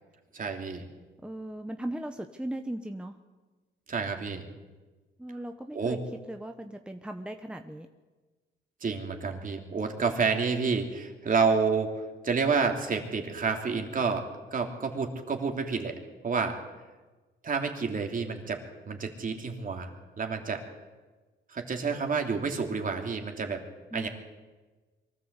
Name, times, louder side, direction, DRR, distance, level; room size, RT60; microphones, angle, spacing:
voice 1, 0.3-0.9 3.9-4.4 5.7-6.0 8.8-16.0 16.2-16.6 17.4-18.6 18.9-20.6 21.5-23.6 23.9-24.1, right 5 dB, 45° right, 4 dB, 3.1 m, -29 dB
voice 2, 1.2-3.1 5.2-6.0 6.3-7.9 23.9-24.1, right 1 dB, 5° right, 6 dB, 1.1 m, -37 dB
23.5 x 13.5 x 8.3 m, 1.3 s
cardioid pair, 90°, 20 cm